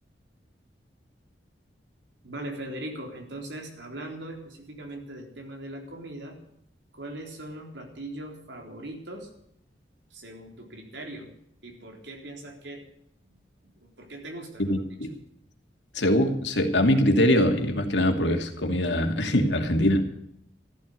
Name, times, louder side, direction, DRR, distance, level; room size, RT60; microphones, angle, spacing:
voice 1, 2.2-6.4 6.9-9.3 10.1-11.3 11.6-12.8 13.2-13.4 13.8-14.7, right 1 dB, 80° right, 2 dB, 3.9 m, -40 dB
voice 2, 14.6-15.1 15.9-20.0, left 1 dB, 80° left, 4 dB, 2.5 m, -23 dB
14.0 x 13.0 x 6.7 m, 0.73 s
head